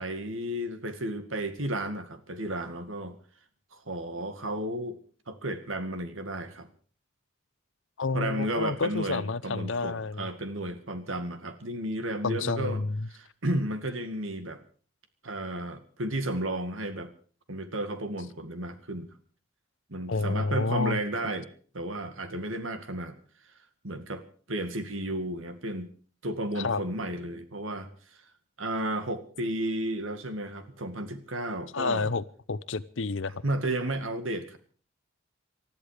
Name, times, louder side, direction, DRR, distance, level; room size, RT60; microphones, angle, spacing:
voice 1, 0.0-3.2 3.7-5.0 5.3-6.7 8.1-12.8 13.1-14.6 15.2-17.1 17.5-19.1 19.9-21.5 21.7-23.2 23.8-24.2 24.5-25.9 26.2-27.9 28.6-32.1 33.4-34.6, right 1 dB, 75° right, 9 dB, 2.1 m, -33 dB
voice 2, 8.0-10.3 12.2-13.1 20.1-21.0 26.6-26.8 31.7-33.4, left 4 dB, 70° left, 17 dB, 0.7 m, -29 dB
20.0 x 13.5 x 5.0 m, 0.43 s
head